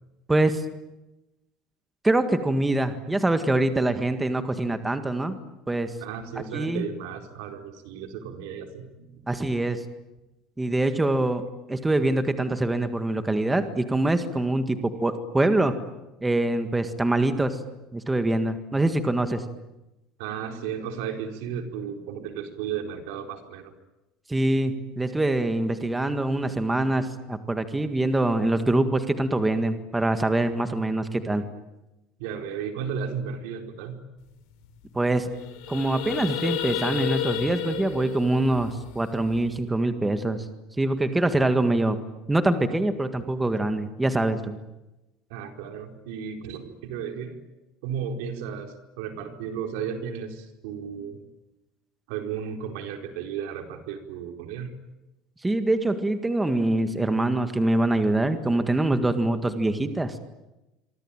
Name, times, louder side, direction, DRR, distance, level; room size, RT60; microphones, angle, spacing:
voice 1, 0.3-0.7 2.0-5.4 5.7-5.9 6.4-6.9 9.3-9.8 10.6-15.8 16.2-17.6 17.9-19.4 24.3-31.4 34.9-35.3 35.7-40.4 40.8-42.0 42.3-44.6 55.4-60.2, right 2 dB, 10° right, 9 dB, 1.8 m, -24 dB
voice 2, 6.0-9.2 20.2-23.7 32.2-34.0 45.3-47.4 47.8-51.2 52.1-54.8, right 7 dB, 90° right, 6 dB, 4.5 m, -34 dB
sound 1, 34.3-34.4 34.6-34.9 35.2-39.6, left 11 dB, 75° left, 5.7 m, -32 dB
27.0 x 24.0 x 9.0 m, 0.99 s
cardioid pair, 160°, 0 cm